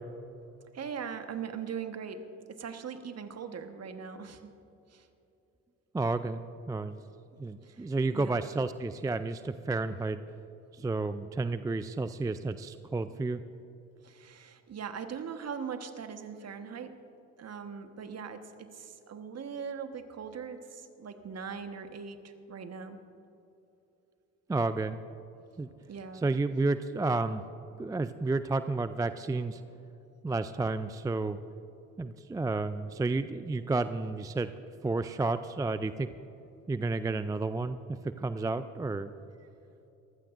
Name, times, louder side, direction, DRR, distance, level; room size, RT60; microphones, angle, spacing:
voice 1, 0.7-4.5 4.9-5.1 7.6-7.9 8.1-8.4 14.0-16.9 17.4-23.0 25.9-26.3, right 6 dB, 40° right, 8 dB, 1.4 m, -40 dB
voice 2, 5.9-6.4 6.7-7.0 7.4-10.2 10.7-13.4 24.5-25.0 25.6-25.7 26.1-27.4 27.8-29.6 30.2-31.4 32.0-34.5 34.8-36.1 36.7-39.1, right 3 dB, 10° right, 12 dB, 0.4 m, -31 dB
23.5 x 15.5 x 2.6 m, 2.9 s
hypercardioid pair, 55°, 38 cm